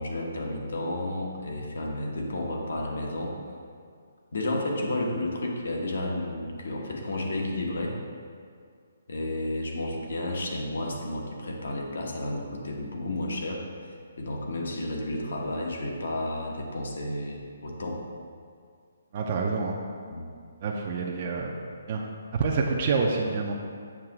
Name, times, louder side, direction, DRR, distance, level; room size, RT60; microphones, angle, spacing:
voice 1, 0.0-3.4 4.3-8.0 9.1-13.7 14.2-18.0 20.1-20.3, left 1 dB, 75° left, 0 dB, 1.1 m, -32 dB
voice 2, 19.1-19.8 20.6-21.5 21.9-22.0 22.3-23.5, right 4 dB, 35° right, -1 dB, 0.5 m, -27 dB
7.3 x 2.9 x 5.9 m, 2.2 s
hypercardioid pair, 165°, 0 cm